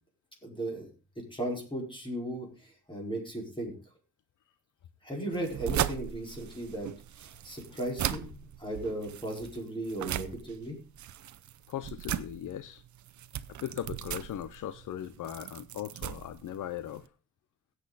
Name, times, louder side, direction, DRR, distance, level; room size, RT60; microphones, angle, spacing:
voice 1, 0.4-0.9 1.2-3.7 5.0-6.9 7.2-10.8, right 1 dB, 15° left, -1 dB, 4.6 m, -36 dB
sound 1, 5.3-17.1, right 11 dB, 75° right, 0.7 m, -38 dB
voice 2, 11.7-12.8 13.6-17.1, left 11 dB, 85° left, 13 dB, 0.6 m, -38 dB
16.5 x 8.1 x 4.0 m, 0.35 s
cardioid pair, 115°, 30 cm